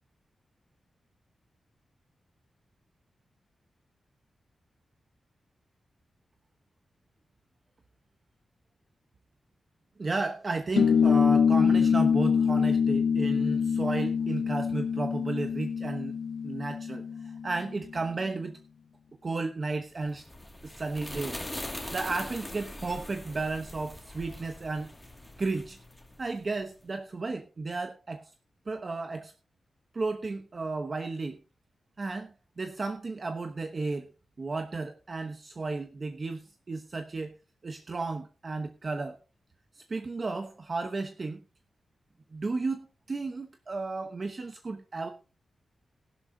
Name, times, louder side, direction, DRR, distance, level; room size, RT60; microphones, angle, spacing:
voice 1, 10.0-18.6 19.2-20.2 20.6-21.4 21.9-24.9 25.4-25.8 26.2-28.3 28.7-29.3 29.9-31.4 32.0-34.1 34.4-37.3 37.6-39.2 39.7-41.4 42.3-45.1, right 3 dB, 35° right, 7 dB, 1.0 m, -33 dB
sound 1, 10.8-17.7, left 6 dB, 85° left, 0.5 m, -25 dB
sound 2, 20.0-26.6, left 1 dB, 10° left, 2.4 m, -42 dB
16.0 x 11.5 x 2.8 m, 0.31 s
wide cardioid pair, 135°, 0 cm